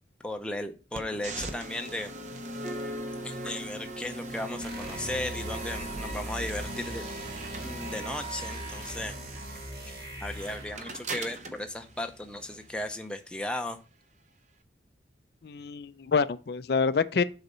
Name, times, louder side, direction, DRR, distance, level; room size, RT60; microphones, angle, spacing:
voice 1, 0.2-2.1 3.2-7.0 7.6-9.1 9.9-10.0 10.2-13.8, left 1 dB, 5° left, 0.6 m, -36 dB
sound 1, 0.9-12.9, right 1 dB, 40° right, 0.6 m, -39 dB
sound 2, 4.6-10.8, equal, 55° right, 1.5 m, -40 dB
voice 2, 15.4-17.2, left 5 dB, 55° left, 0.4 m, -27 dB
6.7 x 4.1 x 5.4 m
head